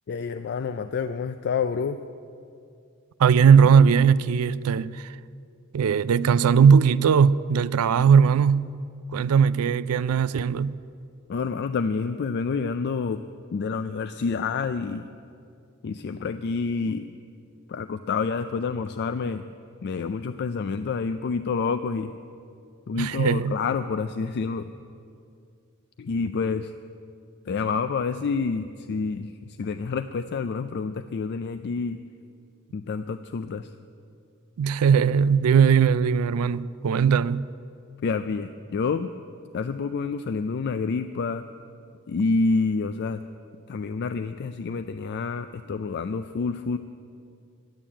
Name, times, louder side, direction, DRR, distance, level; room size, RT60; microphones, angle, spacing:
voice 1, 0.1-2.0 11.3-13.2 13.5-15.1 15.8-17.1 17.7-19.5 19.8-22.1 22.9-24.7 26.0-26.7 27.5-32.0 32.7-33.7 38.0-39.1 39.5-41.4 42.1-43.2 43.7-46.8, left 4 dB, 50° left, 0.4 m, -28 dB
voice 2, 3.2-5.1 5.7-8.7 9.1-10.7 22.9-23.6 34.6-37.5, right 6 dB, 85° right, 0.4 m, -19 dB
11.0 x 8.8 x 9.9 m
head